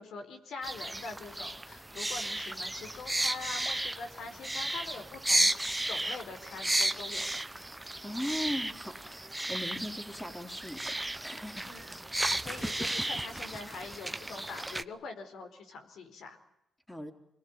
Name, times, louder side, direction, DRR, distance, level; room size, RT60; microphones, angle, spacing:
voice 1, 0.0-7.4 11.7-16.4, left 4 dB, 75° left, 5 dB, 4.4 m, -44 dB
sound 1, 0.6-14.8, right 1 dB, 10° right, 1.0 m, -34 dB
voice 2, 8.0-10.9 11.2-11.7 16.9-17.1, left 1 dB, 5° left, 5 dB, 3.6 m, -38 dB
25.5 x 20.5 x 9.6 m, 0.83 s
cardioid pair, 100°, 0 cm